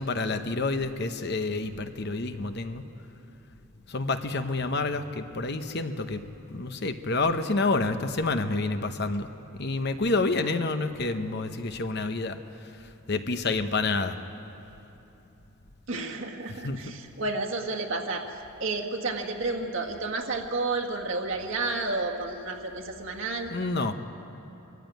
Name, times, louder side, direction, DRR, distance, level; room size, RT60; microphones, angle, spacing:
voice 1, 0.0-2.9 3.9-6.2 6.5-9.3 9.6-12.4 13.1-14.2 16.6-16.8 23.5-23.9, left 3 dB, 50° left, 8 dB, 0.9 m, -28 dB
voice 2, 15.9-18.2 18.6-23.5, right 3 dB, 60° right, 1 dB, 1.8 m, -31 dB
22.5 x 14.5 x 9.2 m, 3.0 s
head